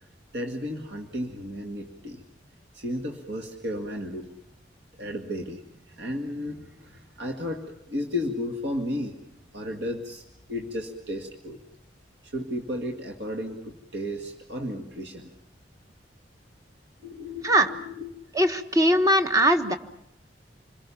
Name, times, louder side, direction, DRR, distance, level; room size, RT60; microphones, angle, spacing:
voice 1, 0.3-2.2 2.7-4.3 5.0-5.6 5.9-9.2 9.5-10.2 10.5-11.6 12.2-15.3 17.0-18.1, left 1 dB, 70° right, 3 dB, 1.9 m, -33 dB
voice 2, 18.3-19.8, right 1 dB, 20° right, 6 dB, 1.1 m, -20 dB
27.5 x 21.0 x 7.1 m, 0.78 s
head